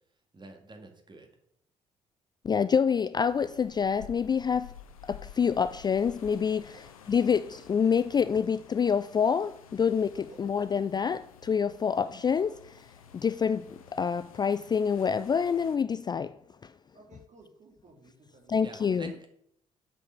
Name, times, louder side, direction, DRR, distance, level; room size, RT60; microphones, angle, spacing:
voice 1, 0.3-1.3 18.6-19.3, right 3 dB, 25° right, 2.1 m, -46 dB
voice 2, 2.4-4.7 5.0-6.8 7.1-12.8 13.1-16.4 16.6-16.7 18.5-19.1, left 6 dB, 25° left, 0.4 m, -27 dB
sound 1, 3.2-15.8, left 9 dB, 80° left, 0.6 m, -52 dB
voice 3, 16.9-18.9, right 2 dB, 40° right, 2.4 m, -56 dB
8.1 x 5.5 x 5.8 m
figure-of-eight pair, 45°, 18 cm